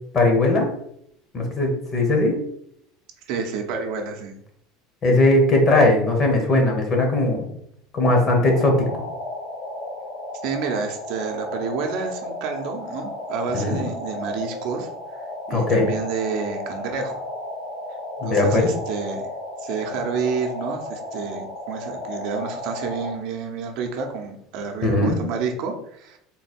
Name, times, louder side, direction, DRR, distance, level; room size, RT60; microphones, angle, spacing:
voice 1, 0.1-0.7 1.3-2.4 5.0-7.5 7.9-8.9 13.5-13.8 15.5-15.9 18.2-18.6 24.8-25.2, left 2 dB, 30° left, 2 dB, 1.0 m, -19 dB
voice 2, 3.3-4.4 10.4-15.2 15.5-17.2 18.2-19.2 19.6-26.2, right 5 dB, 60° right, 3 dB, 0.7 m, -29 dB
sound 1, 8.4-23.1, left 1 dB, 70° left, 1.5 m, -34 dB
3.8 x 2.2 x 4.3 m, 0.70 s
cardioid pair, 155°, 0 cm